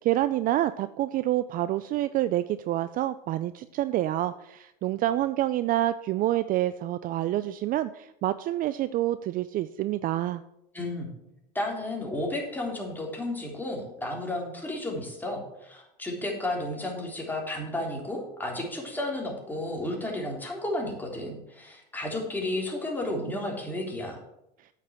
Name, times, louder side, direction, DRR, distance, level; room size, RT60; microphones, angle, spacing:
voice 1, 0.0-10.4, right 14 dB, 40° right, 14 dB, 0.4 m, -27 dB
voice 2, 10.7-11.1 11.6-24.2, left 1 dB, 10° left, -1 dB, 3.5 m, -32 dB
8.5 x 6.6 x 7.5 m, 0.85 s
hypercardioid pair, 95°, 21 cm